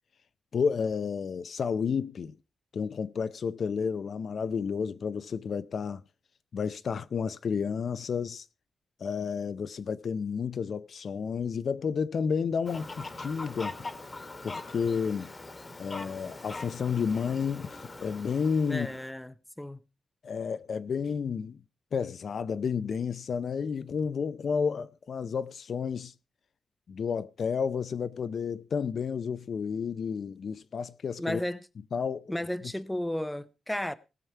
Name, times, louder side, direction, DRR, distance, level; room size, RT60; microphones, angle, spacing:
voice 1, 0.5-2.3 2.7-6.0 6.5-8.4 9.0-13.7 14.4-15.3 15.8-18.9 20.2-21.6 21.9-26.1 26.9-31.4 31.9-32.4, left 6 dB, 55° left, 0.6 m, -31 dB
Fowl, 12.6-19.1, left 2 dB, 25° left, 1.4 m, -42 dB
voice 2, 18.7-19.8 31.2-31.6 32.3-34.0, left 1 dB, 5° left, 0.6 m, -33 dB
19.0 x 7.1 x 4.5 m
wide cardioid pair, 145°, 0 cm